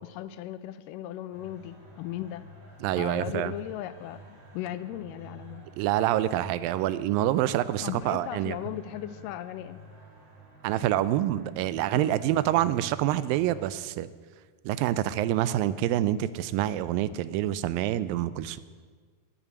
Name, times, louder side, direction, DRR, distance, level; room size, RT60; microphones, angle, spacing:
voice 1, 0.1-2.5 3.0-5.7 7.8-9.8 12.0-12.2, left 12 dB, 80° left, 13 dB, 2.1 m, -37 dB
sound 1, 1.3-13.7, right 3 dB, 60° right, 3.9 m, -50 dB
voice 2, 2.8-3.5 5.8-8.6 10.6-14.1 14.7-18.6, right 13 dB, 85° right, 15 dB, 2.3 m, -27 dB
10.5 x 9.9 x 8.3 m, 1.5 s
omnidirectional pair, 4.0 m